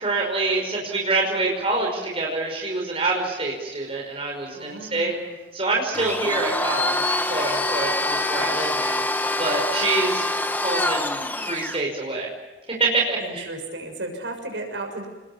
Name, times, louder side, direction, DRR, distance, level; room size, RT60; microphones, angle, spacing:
voice 1, 0.0-5.1 5.5-9.0 9.4-10.3 10.5-12.3 12.8-13.5, right 3 dB, 30° right, -1 dB, 5.4 m, -26 dB
voice 2, 4.5-5.4 8.3-8.9 13.1-15.1, right 2 dB, 65° right, 4 dB, 6.5 m, -35 dB
Domestic sounds home sounds, 5.9-11.8, left 2 dB, 10° left, 1.2 m, -25 dB
29.5 x 21.0 x 7.2 m, 1.2 s
head